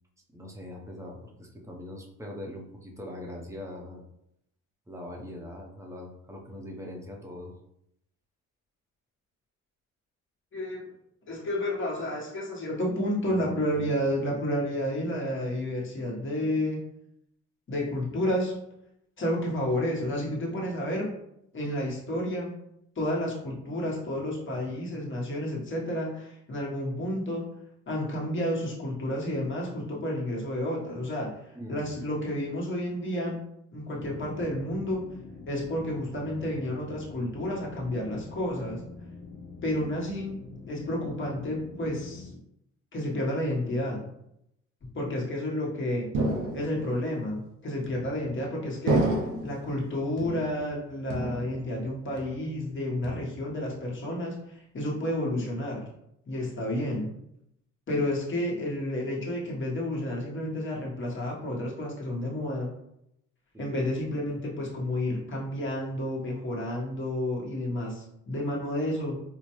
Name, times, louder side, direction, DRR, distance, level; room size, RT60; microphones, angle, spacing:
voice 1, 0.3-4.0 4.9-7.5 31.5-32.0 63.5-63.8, left 1 dB, 10° right, 0 dB, 0.7 m, -42 dB
voice 2, 10.5-10.9 11.2-16.8 17.7-18.5 19.2-21.1 21.5-22.6 22.9-27.5 27.9-31.4 31.7-33.4 33.7-35.1 35.5-38.8 39.6-42.3 42.9-44.1 44.8-46.1 46.5-49.2 49.4-55.9 56.3-57.1 57.9-62.7 63.6-69.2, left 1 dB, 40° left, -3 dB, 1.3 m, -31 dB
sound 1, 34.0-42.3, left 3 dB, 70° left, 1.1 m, -45 dB
sound 2, 46.1-47.0 47.8-48.4 48.9-49.7 50.2-50.8 51.1-51.9 52.2-52.6 53.0-53.6, right 2 dB, 85° right, 0.8 m, -30 dB
4.2 x 2.2 x 3.0 m, 0.78 s
cardioid pair, 90°, 30 cm